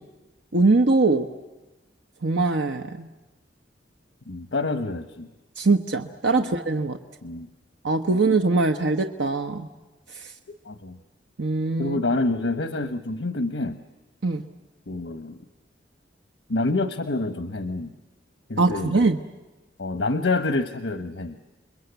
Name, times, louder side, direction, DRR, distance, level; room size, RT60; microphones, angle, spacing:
voice 1, 0.5-1.3 2.2-3.1 5.6-7.0 7.8-9.7 11.4-12.0 14.2-14.4 18.6-19.2, right 3 dB, 90° right, 5 dB, 1.0 m, -22 dB
voice 2, 4.3-5.3 6.3-6.5 7.2-7.5 10.7-11.0 11.8-13.8 14.9-15.4 16.5-17.9 18.5-18.9 19.8-21.4, left 2 dB, 90° left, 9 dB, 1.0 m, -27 dB
29.0 x 22.0 x 8.1 m, 1.1 s
head